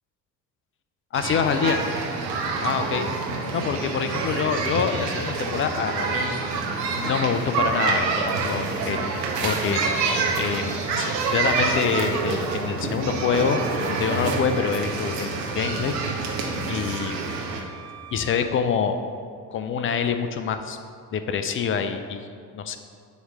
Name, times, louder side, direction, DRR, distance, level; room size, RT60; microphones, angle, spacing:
voice 1, 1.1-1.8 2.6-3.1 3.5-6.4 6.9-9.1 9.4-9.8 10.3-15.9 16.7-17.2 18.1-19.0 19.5-20.8 21.1-22.3 22.5-22.8, left 6 dB, 25° left, 8 dB, 0.4 m, -26 dB
sound 1, 1.1-17.6, right 4 dB, 80° right, 1.0 m, -27 dB
Bowed string instrument, 13.0-18.4, right 5 dB, 35° right, 1.3 m, -41 dB
8.0 x 3.1 x 6.3 m, 2.2 s
figure-of-eight pair, 55°, 50 cm